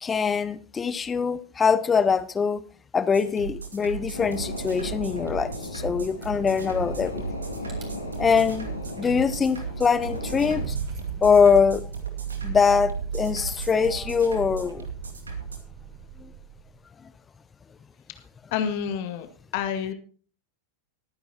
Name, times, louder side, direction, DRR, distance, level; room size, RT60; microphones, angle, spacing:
voice 1, 0.0-2.6 2.9-7.2 8.2-8.7 9.0-10.7 11.2-11.9 12.4-14.9 16.2-16.3, left 6 dB, 20° left, 0.7 m, -23 dB
sound 1, 3.1-15.6, right 6 dB, 75° right, 2.2 m, -37 dB
sound 2, 4.1-10.6, left 1 dB, 85° left, 2.4 m, -36 dB
Rattle / Car / Engine starting, 7.7-7.9 8.3-8.6 8.9-16.6, right 5 dB, 30° right, 4.5 m, -37 dB
voice 2, 18.5-19.3 19.5-19.9, left 8 dB, 45° left, 2.0 m, -28 dB
21.0 x 9.6 x 2.9 m
figure-of-eight pair, 90°, 0 cm